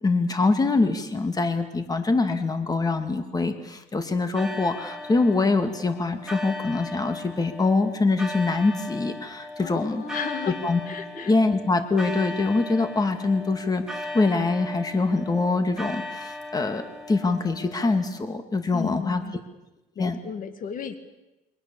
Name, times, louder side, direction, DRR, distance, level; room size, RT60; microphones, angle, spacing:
voice 1, 0.0-10.0 10.5-10.8 11.1-19.2 20.0-20.2, left 3 dB, 20° left, 8 dB, 2.3 m, -24 dB
sound 1, 4.4-18.2, left 1 dB, 5° right, 2.1 m, -38 dB
voice 2, 9.6-10.6 10.9-11.3 18.7-19.3 20.0-21.0, left 6 dB, 55° left, 9 dB, 2.2 m, -34 dB
29.0 x 23.5 x 7.1 m, 1.0 s
cardioid pair, 110°, 17 cm